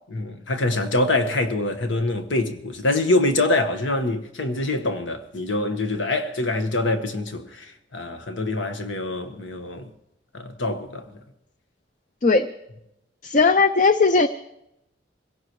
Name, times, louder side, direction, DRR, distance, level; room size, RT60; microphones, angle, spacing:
voice 1, 0.1-9.9 10.3-11.1, left 2 dB, 85° left, 1.5 m, -25 dB
voice 2, 13.2-14.3, left 4 dB, 40° left, 0.5 m, -17 dB
25.0 x 17.0 x 3.2 m
head